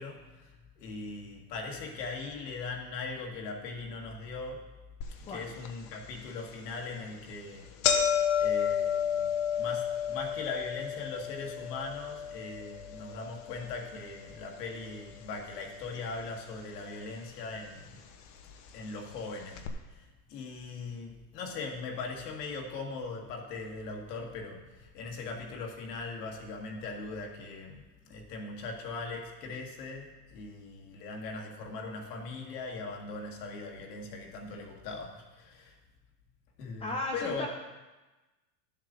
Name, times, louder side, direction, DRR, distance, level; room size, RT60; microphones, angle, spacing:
voice 1, 0.0-4.6 5.3-7.7 8.4-9.3 9.6-18.0 18.7-19.6 19.9-35.8 36.6-37.5, left 3 dB, 70° left, 1 dB, 1.8 m, -40 dB
sound 1, 5.0-5.1 5.6-5.7 6.6-6.8 7.1-7.2 7.5-15.7 15.9-16.7 17.5-17.6 18.5-18.6 18.9-19.0 19.6-19.7, left 8 dB, 45° left, 1.0 m, -32 dB
voice 2, 36.8-37.5, left 2 dB, 15° left, 0 dB, 0.4 m, -35 dB
12.0 x 7.5 x 2.6 m, 1.2 s
hypercardioid pair, 115°, 50 cm